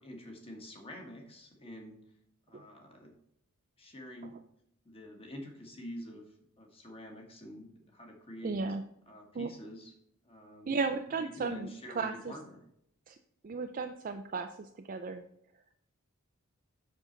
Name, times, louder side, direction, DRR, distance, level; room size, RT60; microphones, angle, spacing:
voice 1, 0.0-2.0 2.5-3.1 3.8-4.4 4.8-8.6 9.1-9.9 10.2-10.7 11.2-12.6, equal, 25° left, 2 dB, 1.5 m, -47 dB
voice 2, 8.4-8.8 9.3-9.5 10.7-11.7 11.9-12.3 13.1-13.2 13.4-15.2, right 4 dB, 40° right, 6 dB, 0.4 m, -34 dB
7.3 x 6.4 x 3.9 m, 0.73 s
head